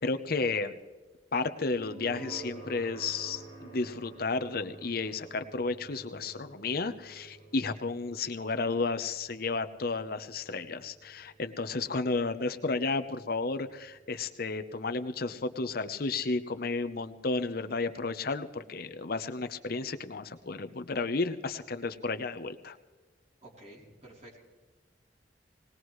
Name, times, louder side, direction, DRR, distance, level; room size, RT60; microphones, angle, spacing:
voice 1, 0.0-0.7 1.3-22.8, left 3 dB, 55° left, 9 dB, 0.8 m, -32 dB
sound 1, 1.8-16.7, right 3 dB, 60° right, 2.4 m, -51 dB
voice 2, 23.4-24.4, right 1 dB, 40° right, -2 dB, 3.4 m, -51 dB
20.0 x 19.5 x 3.2 m, 1.3 s
head